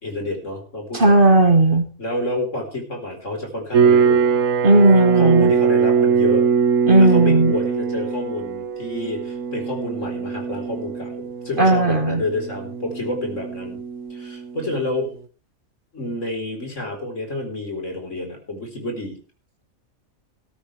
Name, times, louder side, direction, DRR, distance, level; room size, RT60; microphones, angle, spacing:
voice 1, 0.0-1.4 2.0-4.2 5.2-6.5 7.0-13.8 14.1-15.2 15.9-19.2, left 1 dB, 60° left, 3 dB, 4.4 m, -29 dB
voice 2, 0.9-1.9 4.6-5.5 6.9-7.5 11.6-12.2, right 2 dB, 40° right, 7 dB, 1.8 m, -15 dB
sound 1, 3.7-14.8, right 6 dB, 75° right, 1.5 m, -22 dB
16.5 x 14.0 x 3.3 m, 0.35 s
omnidirectional pair, 1.4 m